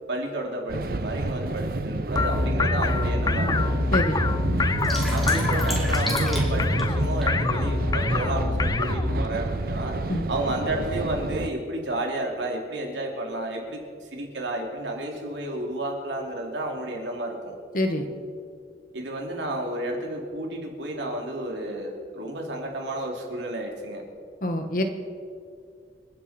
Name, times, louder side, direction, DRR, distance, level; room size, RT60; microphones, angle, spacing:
voice 1, 0.1-3.7 5.1-10.0 10.3-17.5 18.9-24.0, right 1 dB, 85° right, 0 dB, 2.9 m, -31 dB
sound 1, 0.7-11.5, right 2 dB, 55° right, 0.6 m, -29 dB
sound 2, 2.1-9.3, left 3 dB, 20° left, 0.4 m, -25 dB
voice 2, 3.9-4.3 10.1-10.2 17.7-18.1 24.4-24.8, left 1 dB, 50° left, 6 dB, 1.4 m, -25 dB
sound 3, 4.3-7.3, equal, ahead, 2.5 m, -33 dB
28.5 x 9.5 x 4.3 m, 2.3 s
head